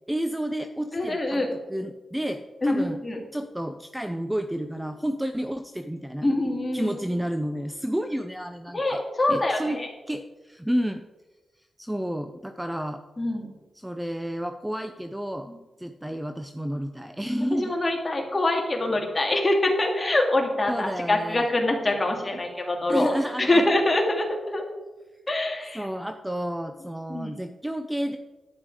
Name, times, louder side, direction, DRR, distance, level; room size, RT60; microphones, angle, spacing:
voice 1, 0.1-3.0 3.3-6.3 6.7-9.0 9.3-9.8 10.1-11.0 11.8-13.0 13.8-15.5 15.8-17.7 20.7-21.5 22.9-23.6 25.7-28.2, equal, 5° right, 8 dB, 0.6 m, -30 dB
voice 2, 0.9-1.5 2.6-3.2 6.2-6.9 8.7-9.9 13.2-13.5 17.5-23.1 23.4-24.6 25.3-25.9 27.1-27.4, left 2 dB, 25° left, 1 dB, 2.7 m, -24 dB
11.0 x 9.7 x 5.0 m, 1.2 s
cardioid pair, 80°, 0 cm